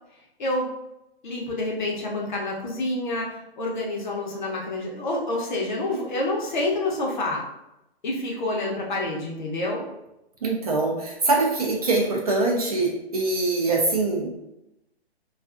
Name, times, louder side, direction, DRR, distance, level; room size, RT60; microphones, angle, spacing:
voice 1, 0.4-0.7 1.2-7.4 8.0-9.8, left 2 dB, 45° left, -2 dB, 0.7 m, -28 dB
voice 2, 10.4-14.3, right 2 dB, 35° right, -1 dB, 0.4 m, -23 dB
2.5 x 2.4 x 2.3 m, 0.90 s
hypercardioid pair, 155°, 32 cm